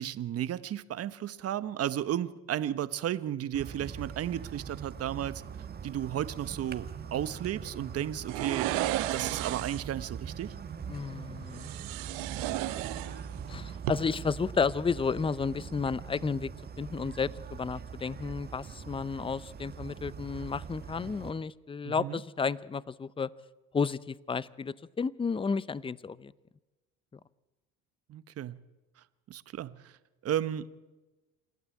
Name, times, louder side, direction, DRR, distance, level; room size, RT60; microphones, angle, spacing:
voice 1, 0.0-5.4 5.8-10.5 21.8-22.2 28.1-28.6 29.3-29.9 30.2-30.7, right 11 dB, 45° right, 15 dB, 1.1 m, -34 dB
sound 1, 3.5-21.3, right 7 dB, 30° right, 1.4 m, -42 dB
sound 2, 8.3-9.9 11.5-13.5 13.7-13.9, right 16 dB, 80° right, 1.1 m, -33 dB
voice 2, 10.9-11.7 13.5-16.5 16.8-23.3 23.7-26.3, left 5 dB, 15° left, 19 dB, 0.6 m, -32 dB
27.5 x 12.5 x 8.4 m, 1.1 s
supercardioid pair, 95°, 32 cm